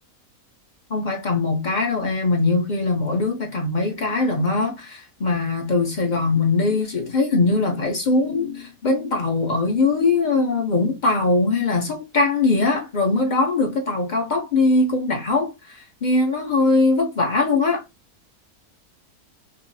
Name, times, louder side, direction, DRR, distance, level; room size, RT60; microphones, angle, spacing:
voice 1, 0.9-17.8, left 3 dB, 40° left, 0.7 m, -21 dB
5.2 x 2.0 x 2.7 m
omnidirectional pair, 1.6 m